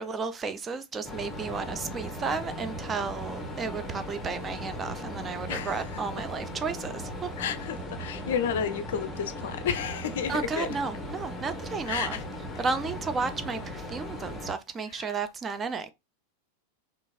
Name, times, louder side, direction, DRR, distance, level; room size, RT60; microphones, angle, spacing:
voice 1, 0.0-7.3 10.3-12.2 12.6-15.9, right 4 dB, 20° right, 0.3 m, -33 dB
sound 1, 1.0-14.5, equal, 10° left, 0.8 m, -38 dB
voice 2, 5.5-6.2 7.4-10.8 11.9-12.2 14.9-15.2, left 8 dB, 55° left, 0.4 m, -32 dB
3.0 x 2.4 x 2.3 m
figure-of-eight pair, 90°, 0 cm